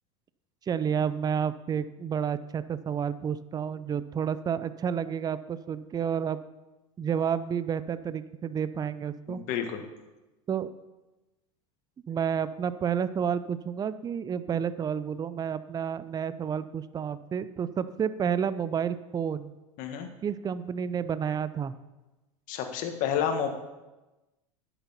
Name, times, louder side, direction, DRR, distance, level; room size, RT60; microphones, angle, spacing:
voice 1, 0.7-6.4 7.0-9.4 10.5-10.7 12.1-19.5 20.2-21.7, right 7 dB, 20° right, 15 dB, 0.5 m, -30 dB
voice 2, 9.3-9.8 19.8-20.1 22.5-23.5, left 8 dB, 55° left, 5 dB, 1.5 m, -30 dB
10.5 x 7.1 x 5.6 m, 1.1 s
hypercardioid pair, 90°, 17 cm